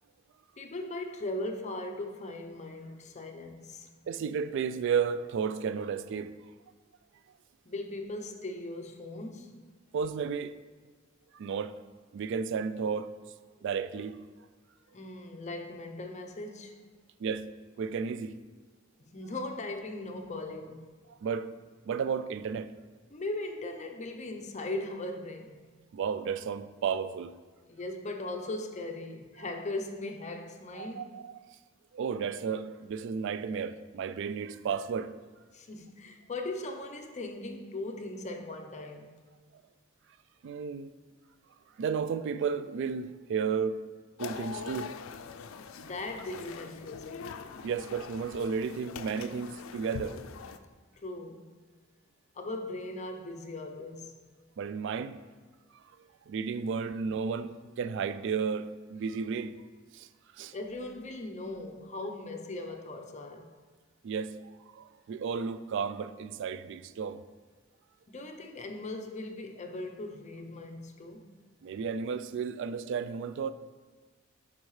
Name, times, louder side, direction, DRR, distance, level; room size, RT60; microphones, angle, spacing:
voice 1, 0.6-3.9 7.7-9.6 14.9-16.8 19.0-20.8 23.1-25.7 27.7-31.1 35.5-39.1 45.7-47.3 51.0-51.5 52.3-54.2 60.5-63.5 68.1-71.2, left 2 dB, 35° left, 0.6 m, -39 dB
voice 2, 4.1-6.3 9.9-10.6 11.3-11.8 12.1-13.1 13.6-14.2 17.2-17.5 17.8-18.4 21.1-21.5 21.8-22.7 25.9-27.3 30.7-31.5 31.9-35.1 40.4-40.9 41.8-43.8 44.2-44.9 47.6-50.2 54.6-55.2 55.7-55.8 56.3-59.6 59.9-60.1 60.3-60.5 64.0-64.4 64.7-67.2 71.6-73.5, right 6 dB, 65° right, 0.3 m, -33 dB
sound 1, 44.2-50.6, left 5 dB, 85° left, 0.4 m, -43 dB
11.5 x 4.6 x 3.2 m
head